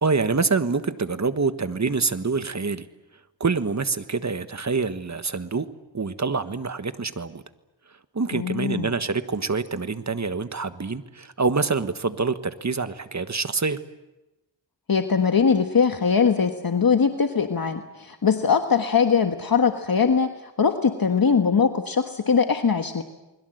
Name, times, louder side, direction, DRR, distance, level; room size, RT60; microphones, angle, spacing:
voice 1, 0.0-2.9 3.4-5.7 5.9-7.4 8.1-13.8, right 4 dB, 40° right, 11 dB, 1.4 m, -26 dB
voice 2, 8.3-8.9 14.9-20.3 20.6-23.0, left 6 dB, 50° left, 6 dB, 1.5 m, -21 dB
29.0 x 21.5 x 7.9 m, 1.0 s
wide cardioid pair, 70°, 44 cm